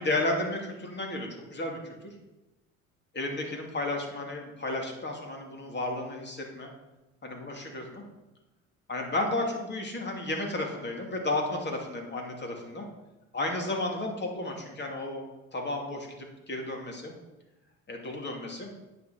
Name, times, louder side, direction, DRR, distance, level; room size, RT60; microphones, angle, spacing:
voice 1, 0.0-2.1 3.1-6.7 7.2-8.0 8.9-12.9 13.3-15.2 15.5-17.1 17.9-18.7, left 2 dB, 30° left, 1 dB, 2.7 m, -33 dB
9.5 x 5.9 x 5.9 m, 1.0 s
hypercardioid pair, 65°, 38 cm